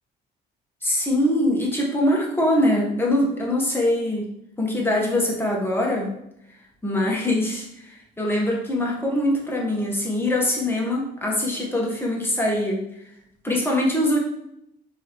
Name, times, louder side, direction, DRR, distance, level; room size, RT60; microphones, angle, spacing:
voice 1, 0.8-4.3 4.6-6.1 6.8-12.8 13.4-14.2, left 1 dB, 10° left, -3 dB, 1.3 m, -23 dB
4.7 x 3.1 x 3.0 m, 0.81 s
cardioid pair, 90°, 20 cm